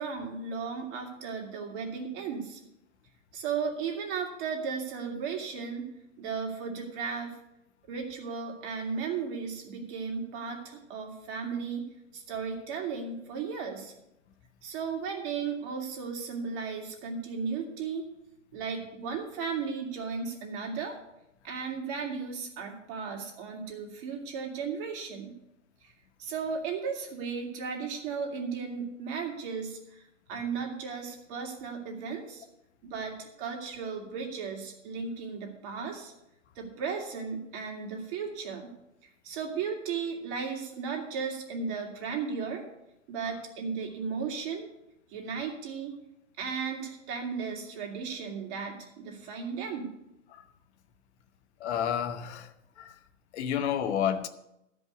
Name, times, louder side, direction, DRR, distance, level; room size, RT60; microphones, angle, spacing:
voice 1, 0.0-2.6 3.3-5.9 6.2-7.4 7.9-11.8 12.1-13.9 14.6-18.1 18.5-21.0 21.4-25.3 25.8-25.9 26.2-32.4 32.8-36.1 36.6-38.7 39.2-42.7 43.1-44.7 45.1-46.0 46.4-49.9, right 5 dB, 45° right, 2.8 m, -35 dB
voice 2, 51.6-53.0 53.3-54.3, left 9 dB, 60° left, 1.0 m, -31 dB
12.5 x 5.4 x 8.1 m
hypercardioid pair, 125°, 38 cm